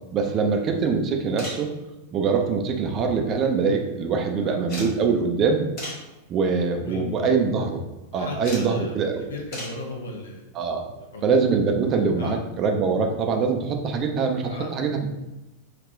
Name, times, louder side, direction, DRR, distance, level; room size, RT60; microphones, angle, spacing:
voice 1, 0.1-1.7 2.1-5.6 6.3-7.8 8.1-9.2 10.5-10.9 11.2-15.1, right 5 dB, 30° right, 3 dB, 0.4 m, -23 dB
sound 1, 1.4-1.7 3.0-3.6 3.8-3.9 4.7-5.0 5.8-6.1 6.8-7.0 8.4-8.7 9.5-9.8 11.5-11.6 13.0-13.1 13.2-13.3, left 1 dB, 45° left, 1.4 m, -36 dB
voice 2, 6.8-7.4 8.1-10.5 11.1-11.2 12.2-12.3 14.4-14.7, left 1 dB, 65° left, 1 dB, 0.7 m, -37 dB
3.5 x 2.4 x 3.1 m, 1.0 s
figure-of-eight pair, 90°, 0 cm